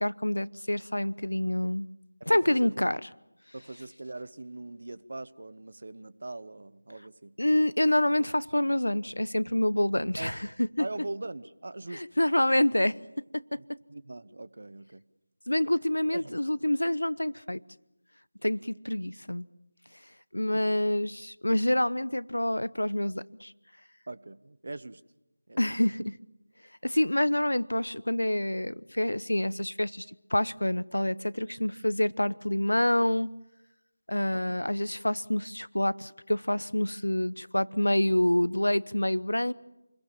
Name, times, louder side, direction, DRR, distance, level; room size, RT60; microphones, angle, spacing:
voice 1, 0.0-1.9 2.3-3.0 7.4-10.9 11.9-13.0 15.5-17.6 18.4-19.5 20.3-23.5 25.6-26.2 26.8-30.1 30.3-33.3 34.1-39.5, left 1 dB, 85° left, 19 dB, 0.8 m, -27 dB
voice 2, 2.2-2.7 3.5-7.4 10.2-10.3 10.8-12.0 13.6-15.1 16.1-16.4 20.3-20.6 24.1-25.0 25.5-25.8 34.5-34.6, right 2 dB, 55° right, 16 dB, 1.1 m, -41 dB
28.0 x 21.5 x 7.3 m, 0.94 s
figure-of-eight pair, 165°, 0 cm